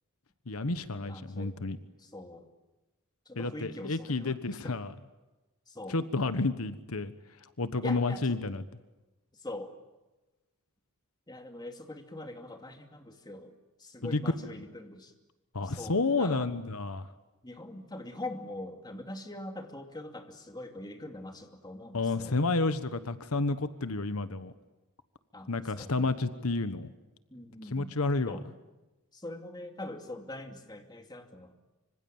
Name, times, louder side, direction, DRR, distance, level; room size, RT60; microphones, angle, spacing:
voice 1, 0.5-1.8 3.4-4.9 5.9-7.1 7.4-8.6 14.0-14.2 15.5-17.1 21.9-24.5 25.5-26.9 27.7-28.4, left 3 dB, 85° left, 12 dB, 1.3 m, -30 dB
voice 2, 1.0-1.6 2.0-2.5 3.3-4.8 5.7-6.0 7.8-8.3 9.3-9.7 11.3-15.1 15.6-16.5 17.4-22.4 25.3-26.1 27.3-28.0 28.3-28.5 29.1-31.5, left 1 dB, 20° left, 5 dB, 2.5 m, -43 dB
26.0 x 25.5 x 8.9 m, 1.1 s
head